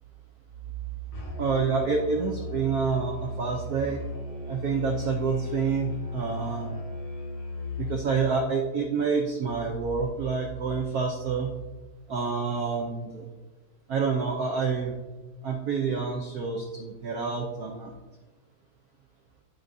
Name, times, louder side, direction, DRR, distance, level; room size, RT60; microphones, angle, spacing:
Musical instrument, 1.1-8.1, left 2 dB, 60° left, 2.3 m, -36 dB
voice 1, 1.4-4.0 4.5-6.8 7.8-11.5 12.1-13.2 13.9-14.9 15.4-17.9, right 5 dB, 90° right, 1 dB, 0.8 m, -28 dB
11.5 x 4.0 x 2.6 m, 1.2 s
omnidirectional pair, 2.4 m